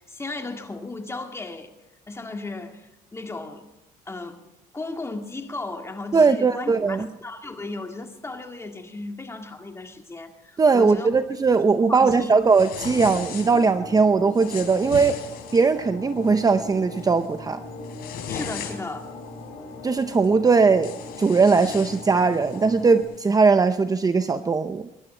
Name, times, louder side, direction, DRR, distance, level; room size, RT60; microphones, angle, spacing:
voice 1, 0.1-1.7 2.1-3.7 4.1-4.4 4.7-11.2 11.9-12.3 18.3-19.1, left 2 dB, 15° left, 4 dB, 2.2 m, -35 dB
voice 2, 6.1-7.1 10.6-15.2 15.5-17.6 19.8-20.9 21.2-24.9, right 4 dB, 20° right, 10 dB, 0.7 m, -19 dB
sound 1, 12.5-13.7 14.3-15.7 16.2-16.6 17.0-17.3 17.7-19.1 20.2-20.3 20.7-22.7, left 7 dB, 65° left, 4.0 m, -38 dB
sound 2, 12.8-23.0, left 3 dB, 90° left, 6.0 m, -40 dB
22.5 x 12.0 x 4.4 m, 0.94 s
cardioid pair, 110°, 17 cm